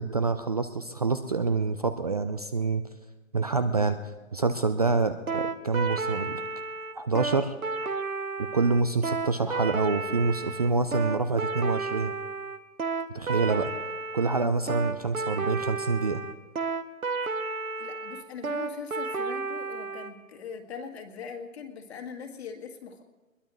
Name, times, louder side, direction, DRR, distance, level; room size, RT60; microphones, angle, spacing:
voice 1, 0.0-2.8 3.3-4.0 4.3-6.4 7.0-7.5 8.4-12.1 13.1-13.7 14.1-16.2, right 4 dB, 30° right, 10 dB, 0.4 m, -26 dB
sound 1, 5.3-20.1, right 4 dB, 85° right, 1.3 m, -32 dB
voice 2, 17.8-23.0, left 6 dB, 50° left, 5 dB, 2.0 m, -41 dB
21.5 x 21.5 x 3.2 m, 1.2 s
figure-of-eight pair, 140°, 41 cm